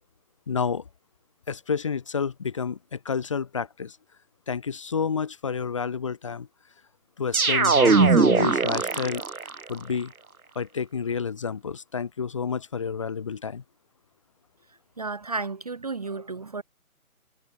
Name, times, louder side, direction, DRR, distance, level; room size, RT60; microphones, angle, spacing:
voice 1, 0.5-0.8 1.5-4.0 4.5-6.5 7.2-9.2 9.7-10.1 10.5-13.6, left 6 dB, 20° left, 1.2 m, -29 dB
sound 1, 7.3-9.6, right 4 dB, 75° right, 1.3 m, -20 dB
voice 2, 15.0-16.6, right 3 dB, 25° right, 1.0 m, -32 dB
figure-of-eight pair, 150°, 44 cm